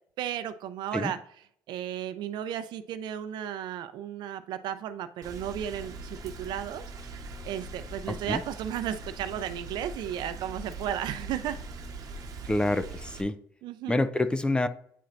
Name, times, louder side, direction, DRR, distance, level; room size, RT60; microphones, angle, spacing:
voice 1, 0.2-1.2 1.7-7.2 7.4-11.6 13.6-14.0, right 10 dB, 75° right, 11 dB, 0.5 m, -34 dB
Rain, 5.2-13.2, right 3 dB, 50° right, 1.0 m, -41 dB
voice 2, 8.1-8.4 12.4-13.4 13.9-14.7, left 2 dB, 10° left, 12 dB, 0.5 m, -27 dB
9.2 x 4.3 x 2.5 m, 0.66 s
cardioid pair, 100°, 8 cm